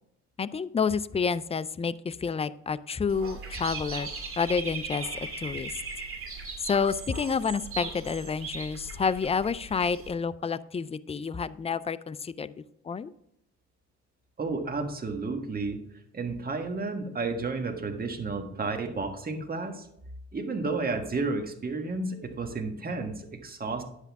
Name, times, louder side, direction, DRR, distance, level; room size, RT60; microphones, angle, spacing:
voice 1, 0.4-4.1 4.4-5.1 5.4-5.7 6.6-12.5 12.8-13.1, left 5 dB, 20° left, 15 dB, 0.4 m, -29 dB
Dog / Bird, 3.1-10.1, right 4 dB, 45° right, 2.3 m, -39 dB
voice 2, 14.4-15.8 16.1-19.9 20.3-23.8, right 3 dB, 30° right, 4 dB, 1.6 m, -32 dB
10.0 x 8.2 x 3.5 m, 0.77 s
cardioid pair, 90°, 30 cm